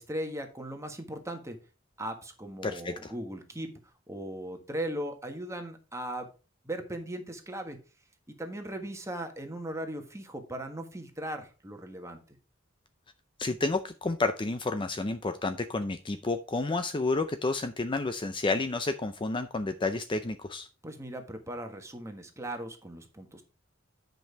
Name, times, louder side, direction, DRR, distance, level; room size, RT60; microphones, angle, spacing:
voice 1, 0.0-1.6 2.0-3.7 4.1-6.3 6.6-7.8 8.4-12.4 20.8-23.4, right 1 dB, 15° right, 5 dB, 1.4 m, -38 dB
voice 2, 2.6-3.1 13.4-20.7, left 3 dB, 25° left, 9 dB, 0.5 m, -30 dB
9.1 x 5.3 x 4.5 m, 0.34 s
head